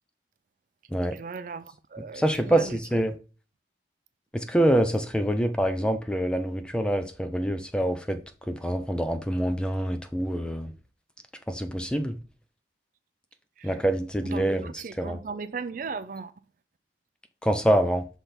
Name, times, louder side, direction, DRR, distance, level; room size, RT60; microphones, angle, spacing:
voice 1, 1.1-2.8 13.6-13.8 14.2-16.3, right 5 dB, 45° right, 0.4 m, -37 dB
voice 2, 2.1-3.1 4.3-8.2 8.5-10.7 11.5-12.2 13.6-14.6 15.0-15.2 17.4-18.0, right 1 dB, 5° left, 0.6 m, -25 dB
6.0 x 3.4 x 5.7 m
head